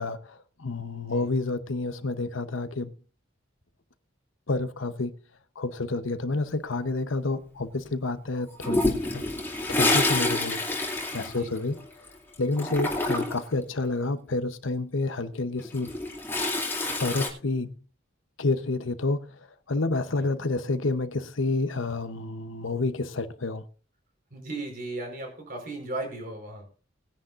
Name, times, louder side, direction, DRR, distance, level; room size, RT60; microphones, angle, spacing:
voice 1, 0.0-2.9 4.5-5.1 5.6-9.2 9.7-10.6 11.1-11.8 12.4-15.9 17.0-17.7 18.4-19.3 19.7-23.6, left 3 dB, 80° left, 1.0 m, -29 dB
voice 2, 0.9-1.3 11.2-11.5 20.2-20.3 24.3-26.7, right 2 dB, 45° right, 4.6 m, -36 dB
Toilet flush, 8.6-12.1 12.3-13.5 15.6-17.3, left 2 dB, 10° left, 2.6 m, -27 dB
20.0 x 10.0 x 2.6 m
head